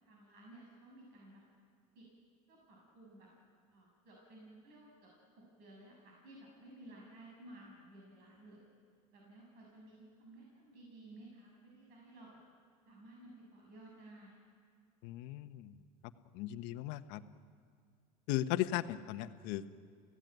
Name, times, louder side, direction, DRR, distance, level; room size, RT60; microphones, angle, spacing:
voice 1, 0.0-1.4 1.9-2.1 2.5-3.3 3.7-5.1 5.4-8.6 9.1-12.4 12.9-14.4, right 1 dB, 55° right, -2 dB, 7.3 m, -56 dB
voice 2, 15.0-15.8 16.3-17.2 18.3-19.7, left 14 dB, 65° left, 10 dB, 1.2 m, -37 dB
29.0 x 17.0 x 9.3 m, 2.1 s
supercardioid pair, 115°, 20 cm